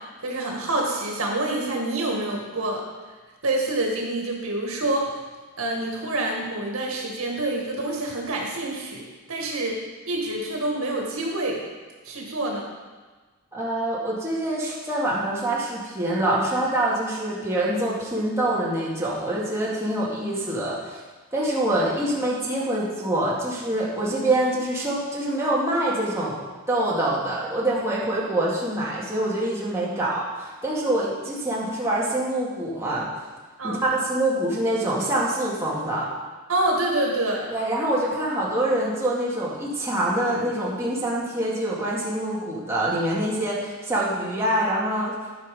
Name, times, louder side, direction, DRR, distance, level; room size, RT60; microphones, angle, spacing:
voice 1, 0.2-2.8 3.4-5.1 5.6-9.8 10.1-11.6 12.0-12.7 33.6-33.9 36.5-37.5, right 2 dB, 80° right, -1 dB, 1.9 m, -27 dB
voice 2, 13.5-21.0 21.3-26.4 26.7-33.1 33.6-36.1 37.5-45.2, right 1 dB, 15° right, -7 dB, 2.1 m, -25 dB
12.0 x 5.6 x 5.3 m, 1.3 s
head